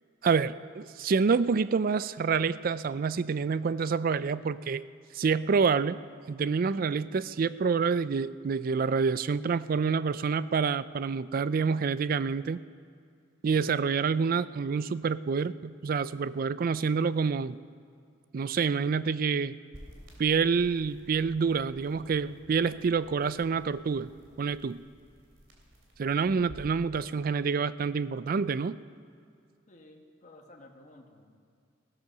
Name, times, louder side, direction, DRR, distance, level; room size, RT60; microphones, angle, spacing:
voice 1, 0.2-4.9 5.1-6.0 6.3-12.6 13.4-17.6 18.3-19.6 20.2-24.1 24.4-24.8 26.0-28.8, right 5 dB, 45° right, 16 dB, 0.3 m, -27 dB
sound 1, 19.7-26.7, equal, 65° right, 3.2 m, -53 dB
voice 2, 29.7-31.4, left 1 dB, 35° left, 1 dB, 1.3 m, -54 dB
16.0 x 11.5 x 6.7 m, 2.3 s
head